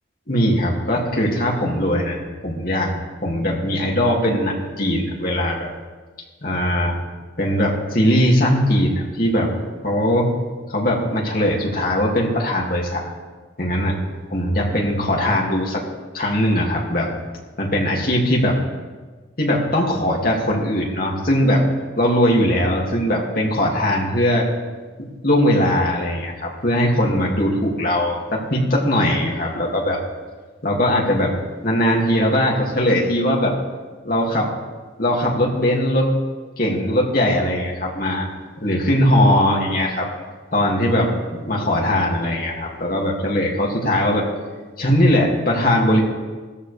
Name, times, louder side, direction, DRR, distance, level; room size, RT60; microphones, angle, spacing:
voice 1, 0.3-2.9 3.2-5.7 6.4-7.0 7.4-9.5 9.8-10.3 10.7-13.0 13.6-14.0 14.3-15.8 16.1-17.1 17.6-18.6 19.4-21.6 22.0-24.5 25.0-30.0 30.6-33.6 34.0-34.5 35.0-36.1 36.6-38.3 38.6-40.1 40.5-44.3 44.8-46.0, equal, 50° left, -2 dB, 2.5 m, -20 dB
17.0 x 14.0 x 3.4 m, 1.4 s
head